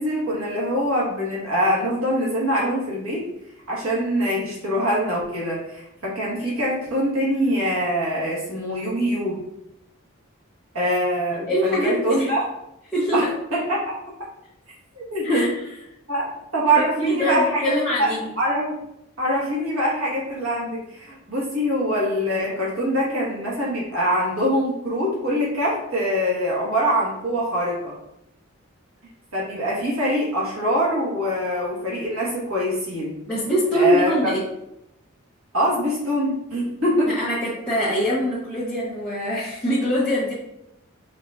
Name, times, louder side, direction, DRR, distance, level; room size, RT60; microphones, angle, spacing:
voice 1, 0.0-3.3 3.7-9.4 10.7-12.5 13.1-13.3 13.5-14.0 14.9-15.5 16.1-16.3 16.5-17.7 18.0-18.8 19.2-27.9 29.3-33.1 33.7-34.3 35.5-37.1, equal, 75° right, -5 dB, 1.5 m, -24 dB
voice 2, 11.5-12.4 12.9-13.3 15.2-15.5 17.0-18.3 33.3-34.4 37.0-40.3, equal, 5° left, -12 dB, 0.9 m, -23 dB
4.7 x 4.1 x 2.4 m, 0.84 s
head